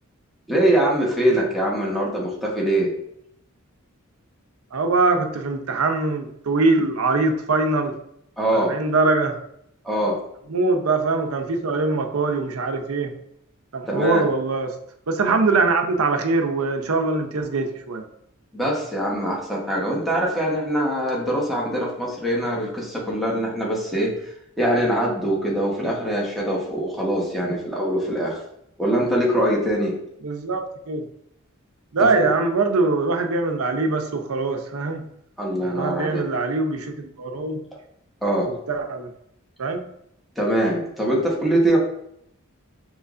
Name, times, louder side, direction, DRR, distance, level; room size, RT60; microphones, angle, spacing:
voice 1, 0.5-2.9 8.4-8.7 9.8-10.2 13.9-14.2 18.5-24.3 24.6-28.4 28.8-30.0 32.0-32.3 35.4-36.2 38.2-38.5 40.4-41.8, right 1 dB, ahead, -5 dB, 1.1 m, -23 dB
voice 2, 4.7-8.0 8.5-9.4 10.5-13.1 13.7-14.8 15.1-18.0 30.2-31.1 31.9-35.0 35.6-37.6 38.5-39.1 39.6-39.8, right 3 dB, 80° right, 5 dB, 0.6 m, -22 dB
5.4 x 3.1 x 2.5 m, 0.73 s
head